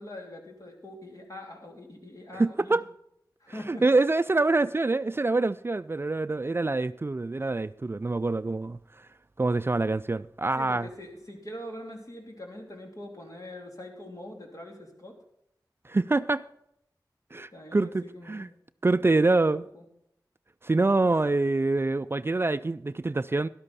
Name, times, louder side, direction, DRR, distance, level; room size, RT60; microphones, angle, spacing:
voice 1, 0.0-2.8 3.4-3.8 10.6-15.2 17.5-18.5 19.0-19.9, left 1 dB, 50° left, 3.1 m, -43 dB
voice 2, 2.4-2.8 3.7-8.8 9.4-10.9 15.9-16.5 17.3-18.5 18.8-19.6 20.6-23.5, right 3 dB, 30° right, 0.3 m, -25 dB
12.0 x 12.0 x 4.2 m
wide cardioid pair, 50°, 7 cm